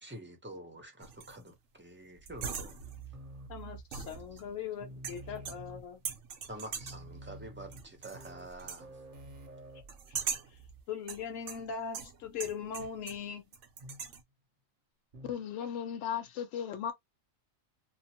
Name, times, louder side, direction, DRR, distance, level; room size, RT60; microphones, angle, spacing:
voice 1, 0.0-2.8 6.5-8.9, right 1 dB, 10° right, 0.6 m, -47 dB
sound 1, 1.0-1.5 2.3-3.1 3.9-4.6 5.0-5.8 6.1-7.1 7.7-8.3 8.6-8.9 9.9-10.6 11.1-13.3 13.5-14.2, right 6 dB, 75° right, 1.0 m, -41 dB
sound 2, 2.1-4.5 4.8-6.1 6.5-6.6 6.8-10.9 11.1-11.5 12.8-13.0 13.8-14.2 15.1-15.5, right 2 dB, 50° right, 0.8 m, -50 dB
voice 2, 3.5-6.0 10.9-13.4, left 7 dB, 90° left, 1.1 m, -40 dB
voice 3, 15.2-16.9, left 8 dB, 70° left, 0.9 m, -36 dB
2.9 x 2.0 x 2.7 m
omnidirectional pair, 1.3 m